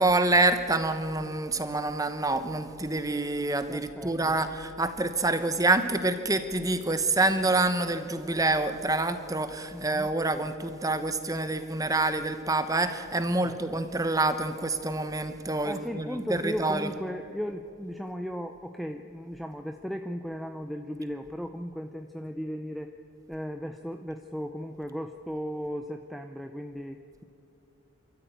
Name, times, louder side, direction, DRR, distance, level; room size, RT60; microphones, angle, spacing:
voice 1, 0.0-16.9, right 2 dB, 15° right, 10 dB, 1.0 m, -27 dB
voice 2, 3.7-4.4 9.7-10.1 13.4-13.8 15.6-22.9 23.3-27.2, equal, ahead, 6 dB, 0.5 m, -36 dB
27.5 x 13.5 x 9.3 m, 2.7 s
head